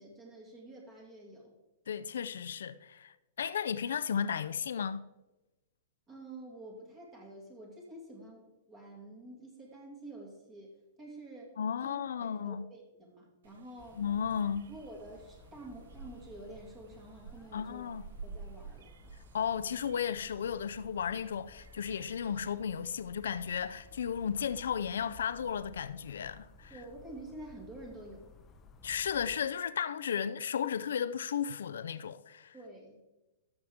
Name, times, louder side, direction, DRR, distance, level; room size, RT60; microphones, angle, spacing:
voice 1, 0.0-1.5 6.1-10.7 11.0-11.6 11.8-11.9 12.2-14.0 14.7-17.9 18.2-18.9 26.7-28.3 32.5-33.0, right 1 dB, 25° right, 2.5 m, -49 dB
voice 2, 1.9-5.0 11.6-12.7 14.0-14.7 17.5-18.0 19.3-26.7 28.8-32.5, left 7 dB, 85° left, 0.4 m, -34 dB
sound 1, 13.4-25.7, right 5 dB, 80° right, 0.5 m, -53 dB
sound 2, 13.8-29.4, left 4 dB, 25° left, 0.7 m, -57 dB
13.0 x 7.0 x 3.6 m
hypercardioid pair, 140°, 0 cm